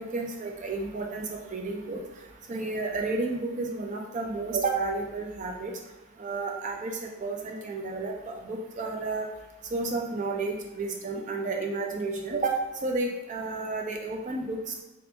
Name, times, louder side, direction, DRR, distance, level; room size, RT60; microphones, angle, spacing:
voice 1, 0.0-2.0 2.5-5.7 6.2-9.3 9.7-12.5 12.8-14.8, right 3 dB, 35° right, 2 dB, 0.3 m, -31 dB
2.5 x 2.2 x 2.7 m, 1.1 s
head